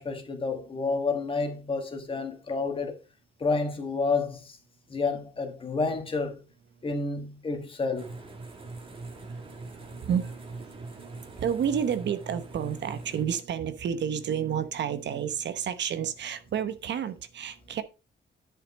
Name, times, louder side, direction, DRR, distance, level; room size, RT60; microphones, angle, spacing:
voice 1, 0.0-3.0 3.4-4.6 4.9-6.4 6.8-8.1, left 4 dB, 30° left, 1.6 m, -29 dB
sound 1, 8.0-13.2, right 2 dB, 30° right, 1.7 m, -42 dB
voice 2, 8.4-17.8, right 8 dB, 75° right, 1.0 m, -31 dB
10.0 x 5.7 x 4.2 m
wide cardioid pair, 175°, 18 cm